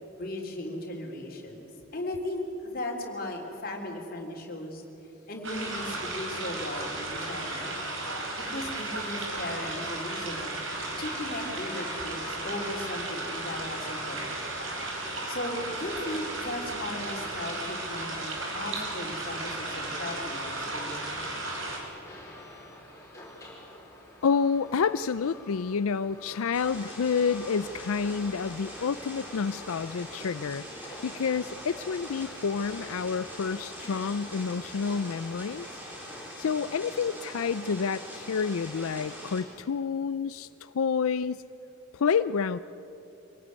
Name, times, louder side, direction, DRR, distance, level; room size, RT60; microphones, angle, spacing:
voice 1, 0.0-4.8 5.3-7.8 8.4-10.5 11.0-14.8 15.3-21.3, left 1 dB, 45° left, 1 dB, 3.5 m, -37 dB
sound 1, 5.4-21.8, right 2 dB, 70° right, 5.1 m, -35 dB
sound 2, 16.8-36.7, left 1 dB, 15° left, 5.4 m, -50 dB
voice 2, 24.2-35.7 36.4-41.4 41.9-42.6, left 6 dB, 90° left, 14 dB, 0.5 m, -29 dB
sound 3, 26.5-39.4, equal, 10° right, 4.3 m, -42 dB
25.0 x 18.0 x 9.6 m, 3.0 s
head